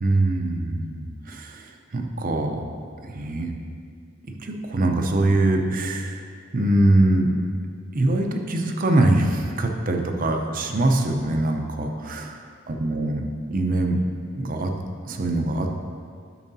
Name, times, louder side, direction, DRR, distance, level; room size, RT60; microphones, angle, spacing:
voice 1, 0.0-2.7 3.0-3.5 4.4-6.3 6.5-7.3 7.9-13.2 13.5-14.1 14.3-14.7 15.0-15.7, right 1 dB, 40° right, 3 dB, 0.6 m, -23 dB
11.0 x 6.3 x 2.7 m, 2.2 s
head